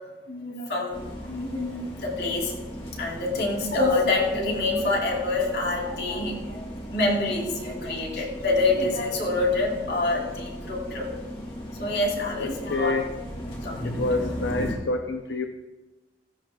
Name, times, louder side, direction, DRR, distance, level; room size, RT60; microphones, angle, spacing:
voice 1, 0.3-2.5 3.0-6.6 6.9-11.1 11.8-12.9 13.6-14.3, left 2 dB, 65° left, -1 dB, 3.2 m, -26 dB
sound 1, 0.9-14.7, equal, 35° left, 3.0 m, -37 dB
voice 2, 12.4-13.0 14.0-15.5, left 2 dB, 85° left, 5 dB, 0.7 m, -27 dB
16.0 x 15.0 x 2.4 m, 1.1 s
head